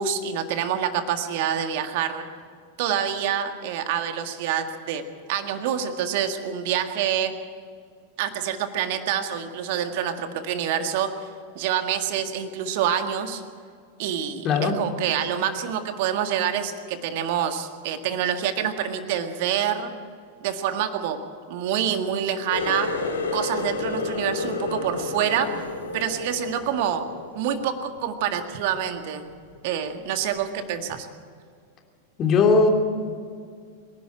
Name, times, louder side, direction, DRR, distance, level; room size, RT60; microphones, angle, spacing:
voice 1, 0.0-2.2 2.8-7.3 8.2-11.1 11.6-13.4 14.0-19.9 20.4-21.2 21.5-23.0 23.3-25.5 25.9-27.0 27.4-29.3 29.6-31.1, right 9 dB, 50° right, 7 dB, 1.8 m, -26 dB
voice 2, 14.4-14.7 32.2-32.7, left 4 dB, 30° left, 3 dB, 2.8 m, -18 dB
Water tap faucet, 22.5-28.0 28.4-28.8 29.3-29.6 30.3-30.4, left 3 dB, 70° left, 2.4 m, -30 dB
25.0 x 11.5 x 9.1 m, 2.1 s
figure-of-eight pair, 90°, 0 cm